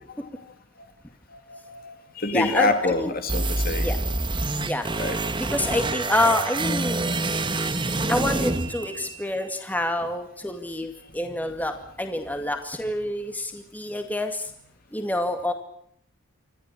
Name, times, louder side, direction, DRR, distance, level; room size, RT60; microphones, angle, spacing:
voice 1, 1.3-3.9 5.0-5.2, left 3 dB, 45° left, 7 dB, 2.3 m, -27 dB
voice 2, 2.3-3.1 3.8-4.0 4.6-4.9 5.4-7.0 8.1-14.5 14.9-15.5, left 1 dB, 10° left, 5 dB, 2.2 m, -27 dB
sound 1, 3.3-9.3, right 2 dB, 20° right, 1.4 m, -27 dB
26.5 x 14.5 x 9.9 m, 0.67 s
head